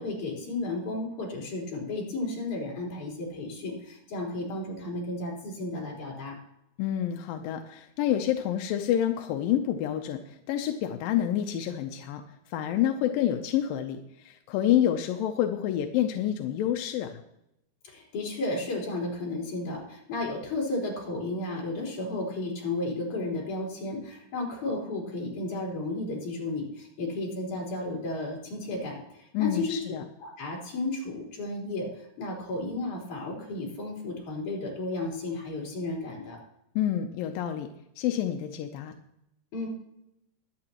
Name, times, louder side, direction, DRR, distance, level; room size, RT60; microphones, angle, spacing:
voice 1, 0.0-6.4 17.8-29.8 30.2-36.4 39.5-39.7, left 2 dB, 50° left, -3 dB, 5.0 m, -33 dB
voice 2, 6.8-12.2 12.5-17.2 29.3-30.0 36.8-37.7 38.0-38.9, left 11 dB, 75° left, 5 dB, 2.2 m, -28 dB
22.5 x 8.8 x 3.0 m, 0.80 s
omnidirectional pair, 4.7 m